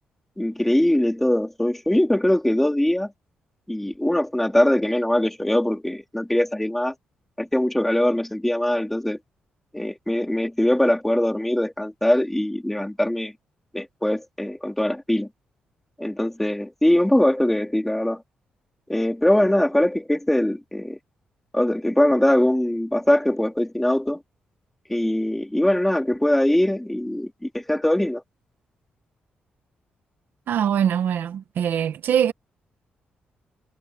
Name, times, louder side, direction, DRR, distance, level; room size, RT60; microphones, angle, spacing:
voice 1, 0.4-3.1 3.7-6.9 7.4-9.2 9.7-13.3 13.7-15.3 16.0-18.2 18.9-21.0 21.5-24.2 24.9-28.2, left 1 dB, 5° left, 3.2 m, -22 dB
voice 2, 30.5-32.3, right 9 dB, 75° right, 1.4 m, -22 dB
cardioid pair, 130°, 3 cm